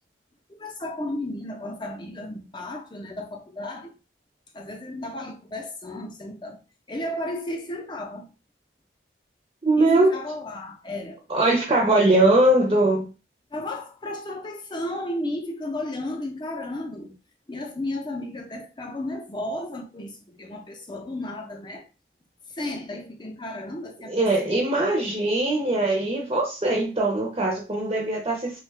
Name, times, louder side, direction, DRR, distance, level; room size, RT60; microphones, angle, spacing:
voice 1, 0.6-3.9 4.5-6.6 6.9-8.3 9.8-11.2 11.8-11.9 13.5-17.1 17.5-21.9 22.5-24.6, left 1 dB, 25° left, 0.6 m, -34 dB
voice 2, 9.6-10.1 11.3-13.0 24.1-28.6, right 2 dB, 30° right, 0.6 m, -21 dB
3.5 x 2.3 x 3.2 m
head